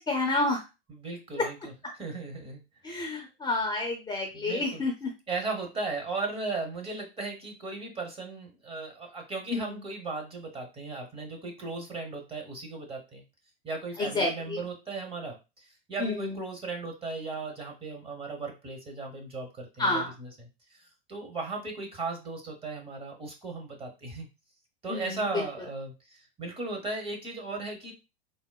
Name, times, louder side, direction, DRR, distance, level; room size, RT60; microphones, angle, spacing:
voice 1, 0.1-0.6 2.8-5.1 9.5-9.6 14.0-14.6 16.0-16.3 19.8-20.1 24.9-25.0, left 2 dB, 15° left, 1 dB, 0.6 m, -29 dB
voice 2, 0.9-2.6 4.3-4.8 5.3-13.2 13.6-24.3 24.8-27.9, right 3 dB, 20° right, 3 dB, 1.0 m, -37 dB
3.7 x 2.0 x 2.3 m, 0.27 s
hypercardioid pair, 115°, 29 cm